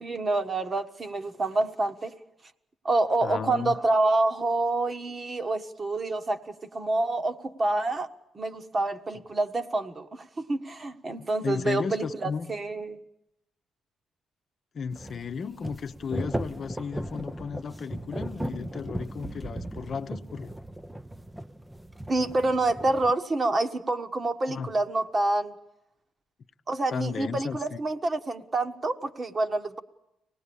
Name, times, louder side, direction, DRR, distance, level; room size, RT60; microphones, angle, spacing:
voice 1, 0.0-2.1 2.8-8.1 8.3-13.0 22.1-25.5 26.7-29.8, right 2 dB, 30° right, 1.4 m, -27 dB
voice 2, 3.2-3.8 11.2-12.5 14.7-20.5 24.5-24.7 26.9-27.8, left 6 dB, 50° left, 0.9 m, -34 dB
sound 1, 14.9-23.1, right 1 dB, 10° right, 0.7 m, -37 dB
24.5 x 19.0 x 7.0 m
cardioid pair, 90°, 0 cm